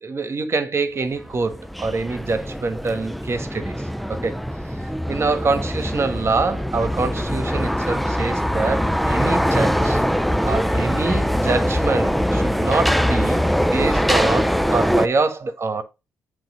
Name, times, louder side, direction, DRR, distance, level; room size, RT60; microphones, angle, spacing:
voice 1, 0.0-3.8 4.1-4.4 5.1-10.0 10.4-15.8, right 3 dB, 40° right, 1.3 m, -25 dB
sound 1, 1.2-15.1, equal, ahead, 0.5 m, -22 dB
7.8 x 3.3 x 4.8 m
supercardioid pair, 55°, 7 cm